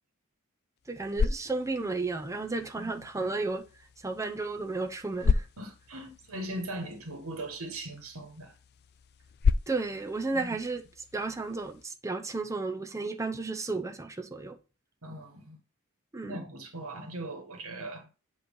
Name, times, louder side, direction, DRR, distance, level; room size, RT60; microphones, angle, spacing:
sound 1, 0.8-11.9, left 5 dB, 50° left, 0.4 m, -34 dB
voice 1, 0.9-3.6 4.0-5.4 9.7-10.8 11.1-14.6 16.1-16.4, right 3 dB, 15° right, 0.6 m, -33 dB
voice 2, 5.6-8.5 10.3-10.6 15.0-15.6 16.2-18.1, right 1 dB, 70° right, 1.5 m, -39 dB
8.3 x 3.2 x 5.3 m
head